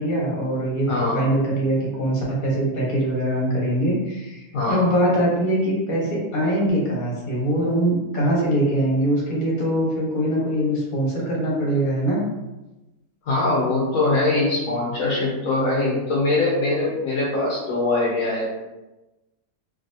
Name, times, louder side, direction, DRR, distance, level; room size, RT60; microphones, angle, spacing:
voice 1, 0.0-0.9 1.1-12.2, right 1 dB, 35° left, -5 dB, 1.0 m, -22 dB
voice 2, 0.9-1.3 4.5-4.9 13.2-18.6, left 2 dB, 65° left, -5 dB, 1.0 m, -22 dB
3.4 x 2.7 x 2.7 m, 1.0 s
omnidirectional pair, 1.6 m